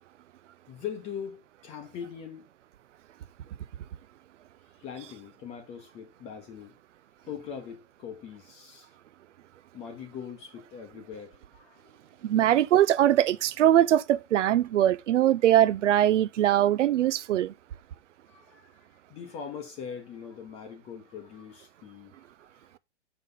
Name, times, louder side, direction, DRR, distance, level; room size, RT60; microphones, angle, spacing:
voice 1, 0.7-2.4 4.8-6.7 7.3-8.9 9.7-12.3 18.3-22.2 22.5-22.7, left 7 dB, 15° left, 0.9 m, -42 dB
voice 2, 12.2-17.5, right 12 dB, 80° right, 0.6 m, -22 dB
6.6 x 5.9 x 3.8 m
hypercardioid pair, 160°, 36 cm